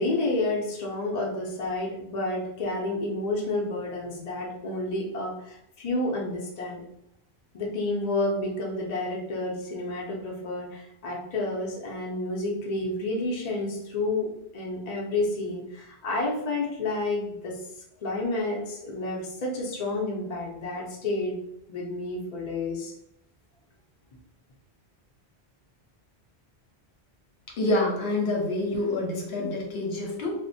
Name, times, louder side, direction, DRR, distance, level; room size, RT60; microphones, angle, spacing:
voice 1, 0.0-6.8 7.5-14.3 14.5-17.6 18.0-21.4 21.7-22.9, left 2 dB, 45° left, -2 dB, 0.6 m, -30 dB
voice 2, 27.6-30.3, left 2 dB, 70° left, -1 dB, 0.9 m, -27 dB
2.5 x 2.1 x 2.6 m, 0.81 s
omnidirectional pair, 1.1 m